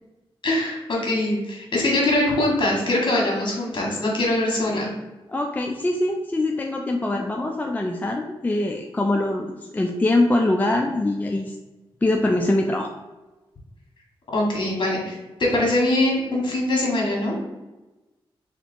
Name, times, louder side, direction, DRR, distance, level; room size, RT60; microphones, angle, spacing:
voice 1, 0.4-4.9 14.3-17.3, left 1 dB, 50° left, -2 dB, 1.4 m, -22 dB
voice 2, 5.3-11.6 12.0-12.9, left 2 dB, 15° left, 2 dB, 0.3 m, -23 dB
3.3 x 2.9 x 4.3 m, 1.1 s
cardioid pair, 75°, 10 cm